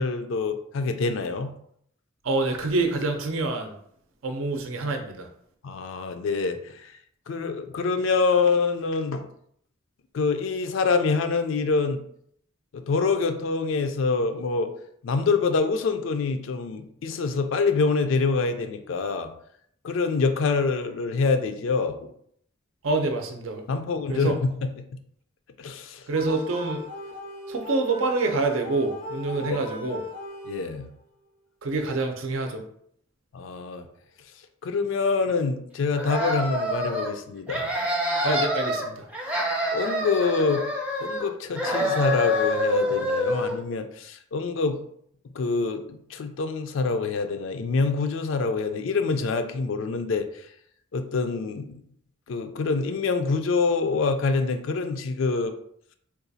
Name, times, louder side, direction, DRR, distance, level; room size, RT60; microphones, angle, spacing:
voice 1, 0.0-1.5 5.6-6.6 7.3-9.3 10.1-12.0 12.7-14.7 15.0-19.3 19.8-22.0 23.7-24.7 25.6-26.0 29.4-29.6 30.5-30.9 33.3-33.9 34.6-37.7 39.7-40.6 41.0-44.8 45.4-45.8 46.1-50.3 50.9-51.8 52.3-55.5, left 4 dB, 70° left, 8 dB, 0.4 m, -25 dB
voice 2, 2.2-3.7 4.2-5.3 22.8-23.6 24.1-24.3 26.1-26.8 27.5-30.0 31.6-32.6 38.2-39.1, right 3 dB, 80° right, 5 dB, 0.5 m, -26 dB
sound 1, 26.1-31.0, left 2 dB, 90° left, 0.8 m, -38 dB
sound 2, 36.0-37.1 37.5-38.8 39.1-41.3 41.6-43.6, left 1 dB, 5° right, 0.4 m, -26 dB
3.8 x 2.3 x 2.6 m, 0.67 s
head